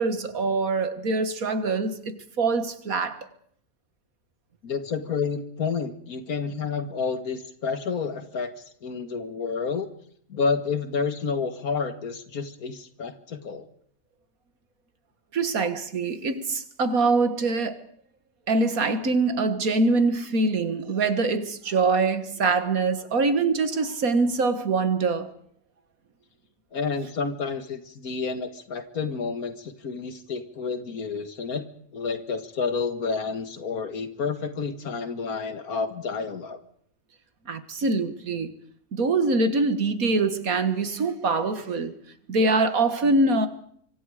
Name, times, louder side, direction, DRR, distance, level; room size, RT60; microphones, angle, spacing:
voice 1, 0.0-3.3 15.3-17.8 18.5-25.3 37.5-38.5 38.9-41.9 42.3-43.5, right 3 dB, 75° right, 2.1 m, -24 dB
voice 2, 4.6-8.5 8.8-9.9 10.3-13.7 26.7-31.7 31.9-36.6, left 5 dB, 85° left, 2.2 m, -30 dB
25.5 x 24.0 x 5.0 m
omnidirectional pair, 1.5 m